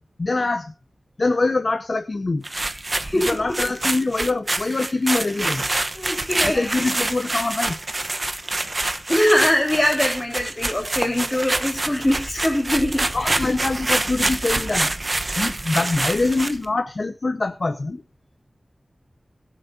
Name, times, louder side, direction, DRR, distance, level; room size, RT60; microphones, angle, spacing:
voice 1, 0.2-0.7 1.2-2.4 3.1-5.6 6.4-7.8 13.1-14.9 15.4-18.0, left 3 dB, 55° left, 7 dB, 1.1 m, -24 dB
sound 1, 2.4-16.6, right 2 dB, 35° right, 1.0 m, -26 dB
voice 2, 2.7-3.3 4.7-4.8 5.9-6.7 9.1-13.5, left 1 dB, 20° left, 1 dB, 4.1 m, -22 dB
22.0 x 7.4 x 2.7 m, 0.34 s
wide cardioid pair, 85°, 0 cm